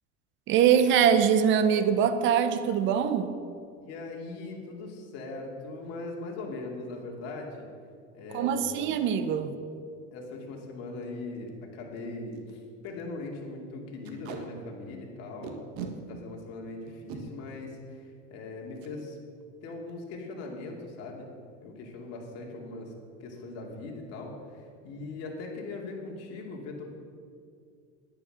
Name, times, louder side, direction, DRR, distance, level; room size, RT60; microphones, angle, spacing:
voice 1, 0.5-3.3 8.3-9.6, right 8 dB, 40° right, 10 dB, 0.8 m, -23 dB
voice 2, 3.8-7.7 8.1-8.9 10.1-15.5 16.1-19.2 19.6-21.3 21.6-22.9 23.2-27.0, left 2 dB, 55° left, 0 dB, 2.6 m, -40 dB
Packing tape duct tape, 10.4-10.6 11.0-11.1 11.3-11.5 12.0-12.1 12.3-12.5 12.8-13.0 14.0-14.4 15.4-15.9 16.9-17.2 18.8-18.9 19.3-19.5 19.7-20.1, right 7 dB, 70° right, 1.6 m, -40 dB
10.5 x 9.8 x 6.6 m, 2.3 s
cardioid pair, 160°, 29 cm